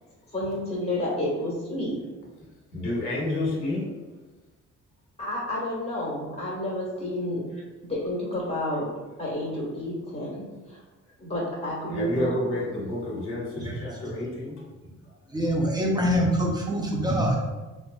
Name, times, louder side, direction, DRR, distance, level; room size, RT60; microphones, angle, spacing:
voice 1, 0.3-1.9 5.2-7.4 7.8-8.9 9.2-10.8 11.2-12.4, left 1 dB, 20° left, -6 dB, 1.5 m, -30 dB
voice 2, 2.7-3.9 11.9-14.6 15.0-15.1, left 1 dB, 45° left, -5 dB, 1.5 m, -29 dB
voice 3, 15.3-17.4, equal, 15° right, -1 dB, 0.7 m, -24 dB
3.8 x 2.5 x 2.4 m, 1.2 s
cardioid pair, 100°, 31 cm